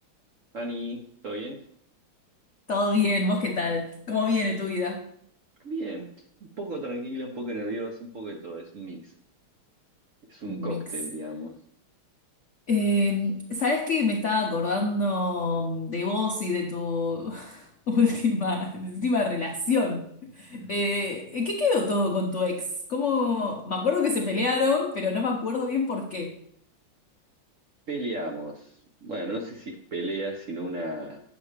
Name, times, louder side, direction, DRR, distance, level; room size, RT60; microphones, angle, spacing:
voice 1, 0.5-1.6 5.6-6.1 6.4-9.1 10.3-11.5 27.9-31.2, right 1 dB, 55° right, 1 dB, 0.8 m, -34 dB
voice 2, 2.7-5.1 10.5-10.9 12.7-26.4, left 3 dB, 70° left, 2 dB, 0.7 m, -26 dB
9.2 x 7.2 x 3.3 m, 0.69 s
omnidirectional pair, 2.4 m